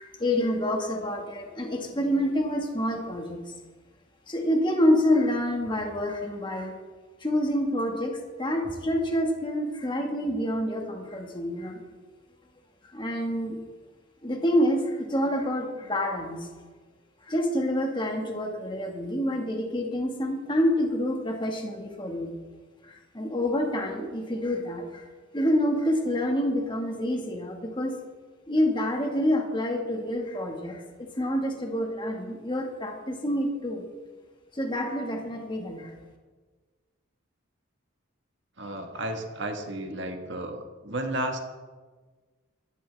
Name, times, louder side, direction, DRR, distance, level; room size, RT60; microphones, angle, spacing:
voice 1, 0.0-3.5 4.3-6.8 7.2-11.8 12.9-13.6 14.2-16.5 17.2-22.3 22.8-25.1 25.3-28.0 28.5-33.8 34.5-35.9, equal, 25° left, 2 dB, 1.7 m, -27 dB
voice 2, 38.6-41.4, right 1 dB, 60° right, 4 dB, 1.6 m, -33 dB
16.0 x 13.0 x 3.5 m, 1.4 s
head